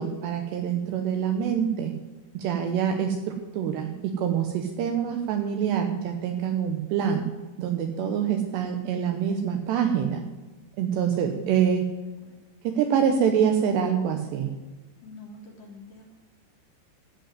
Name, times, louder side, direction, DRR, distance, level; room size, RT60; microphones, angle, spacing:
voice 1, 0.0-1.9 2.3-7.3 7.6-10.2 10.8-11.9 12.6-14.5, right 8 dB, 75° right, 5 dB, 2.8 m, -25 dB
voice 2, 0.6-1.2 8.6-8.7 11.2-12.4 15.0-16.2, left 3 dB, 55° left, 0 dB, 2.7 m, -48 dB
14.0 x 5.3 x 9.2 m, 1.2 s
omnidirectional pair, 5.3 m